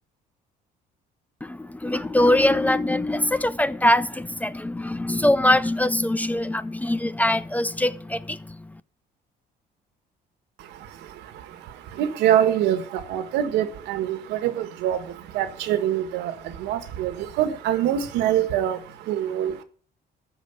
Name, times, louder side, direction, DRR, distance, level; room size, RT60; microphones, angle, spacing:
voice 1, 1.4-8.8, left 1 dB, 10° left, 0.5 m, -23 dB
voice 2, 10.6-19.6, right 10 dB, 85° right, 1.6 m, -25 dB
13.5 x 5.1 x 8.0 m
cardioid pair, 110°, 17 cm